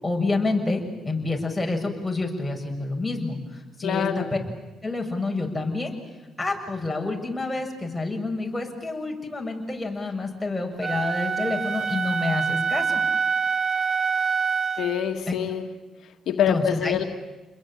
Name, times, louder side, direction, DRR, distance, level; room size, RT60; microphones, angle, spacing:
voice 1, 0.0-4.2 4.8-6.0 6.4-13.0 16.5-17.0, left 2 dB, 10° left, 0 dB, 7.0 m, -28 dB
voice 2, 3.8-4.3 14.8-15.7 16.0-17.0, left 9 dB, 70° left, 5 dB, 1.7 m, -25 dB
Wind instrument woodwind instrument, 10.8-15.0, right 6 dB, 55° right, 1.9 m, -25 dB
30.0 x 22.0 x 9.1 m, 1.2 s
cardioid pair, 90°, 0 cm